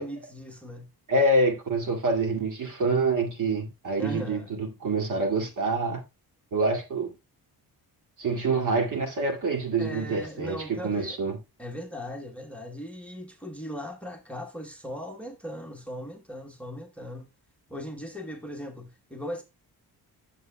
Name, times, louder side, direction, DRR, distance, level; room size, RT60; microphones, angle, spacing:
voice 1, 0.0-0.9 4.0-4.6 9.8-11.2 11.6-17.3 17.7-19.4, equal, 5° left, 1.2 m, -38 dB
voice 2, 1.1-6.0 6.5-7.1 8.2-11.4, right 2 dB, 50° right, 2.2 m, -26 dB
11.0 x 6.9 x 2.3 m
cardioid pair, 120°, 39 cm